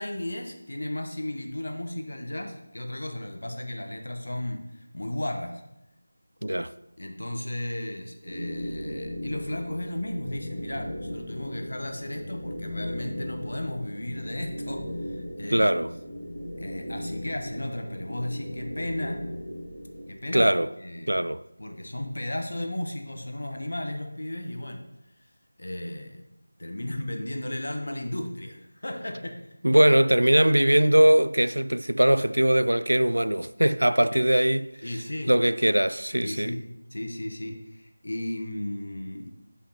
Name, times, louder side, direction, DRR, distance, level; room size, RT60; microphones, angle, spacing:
voice 1, 0.0-5.6 7.0-15.7 16.6-19.3 20.1-20.5 20.8-21.3 21.6-24.9 25.6-26.2 26.6-29.4 34.1-34.2 34.8-35.3 36.2-36.6 36.9-39.3, left 1 dB, 60° left, 1.0 m, -34 dB
voice 2, 6.4-6.7 15.5-15.9 20.3-20.7 21.1-21.4 29.6-34.7 35.3-36.6, right 1 dB, 75° right, 0.3 m, -21 dB
sound 1, 8.3-20.1, equal, 30° right, 2.8 m, -37 dB
12.5 x 5.6 x 2.9 m
figure-of-eight pair, 165°, 0 cm